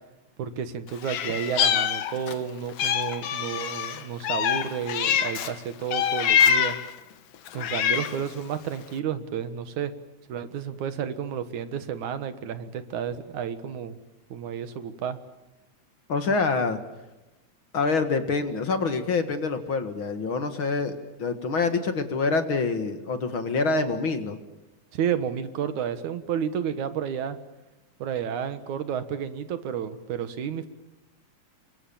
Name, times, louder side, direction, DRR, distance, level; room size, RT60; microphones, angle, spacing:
voice 1, 0.4-6.8 7.5-9.9 10.3-14.0 14.3-15.2 24.9-27.4 28.0-30.7, right 8 dB, 80° right, 11 dB, 2.9 m, -31 dB
Meow, 1.0-2.4 2.8-5.5 5.9-6.9 7.5-8.3, left 8 dB, 70° left, 2.7 m, -25 dB
voice 2, 16.1-16.8 17.7-24.4, left 4 dB, 45° left, 8 dB, 2.3 m, -26 dB
29.5 x 24.0 x 7.2 m, 1.0 s
omnidirectional pair, 3.4 m